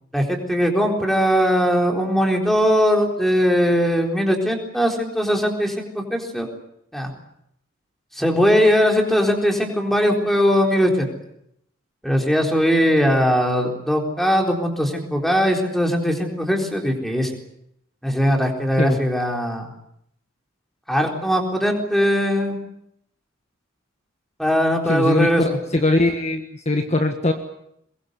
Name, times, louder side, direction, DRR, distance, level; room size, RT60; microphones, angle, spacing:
voice 1, 0.1-6.5 6.9-7.1 8.1-11.1 12.0-17.3 18.0-19.7 20.9-22.6 24.4-25.4, equal, ahead, 1 dB, 4.0 m, -20 dB
voice 2, 24.9-25.3 25.7-27.3, left 2 dB, 35° left, 5 dB, 1.5 m, -20 dB
22.5 x 22.0 x 8.1 m, 0.75 s
head